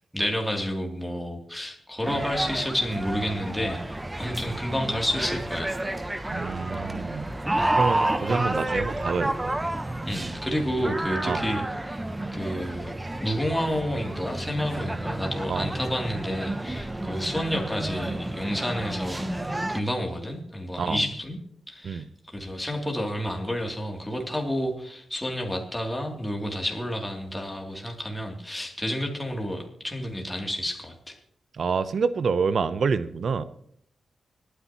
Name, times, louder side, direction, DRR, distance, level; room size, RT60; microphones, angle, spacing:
voice 1, 0.1-5.8 7.6-7.8 8.3-8.4 10.0-12.0 12.3-12.9 13.2-21.4 21.7-31.2, equal, 10° left, 0 dB, 2.8 m, -30 dB
sound 1, 2.0-19.8, right 1 dB, 20° right, 1.0 m, -30 dB
voice 2, 6.3-7.3 7.7-9.3 11.2-11.4 15.5-15.7 20.8-21.0 21.8-22.1 31.6-33.4, right 5 dB, 65° right, 14 dB, 0.7 m, -27 dB
25.0 x 9.7 x 3.0 m, 0.69 s
cardioid pair, 65°, 0 cm